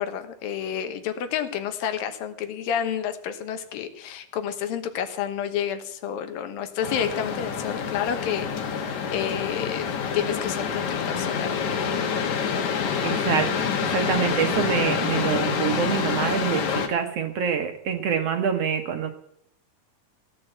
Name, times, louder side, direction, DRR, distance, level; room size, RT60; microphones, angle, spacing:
voice 1, 0.0-8.8 9.1-9.9 10.1-11.6, left 8 dB, 80° left, 9 dB, 2.9 m, -30 dB
sound 1, 6.8-16.9, left 6 dB, 60° left, 2.7 m, -27 dB
voice 2, 13.0-19.1, right 7 dB, 65° right, 6 dB, 1.6 m, -26 dB
16.0 x 8.9 x 7.9 m, 0.73 s
omnidirectional pair, 4.1 m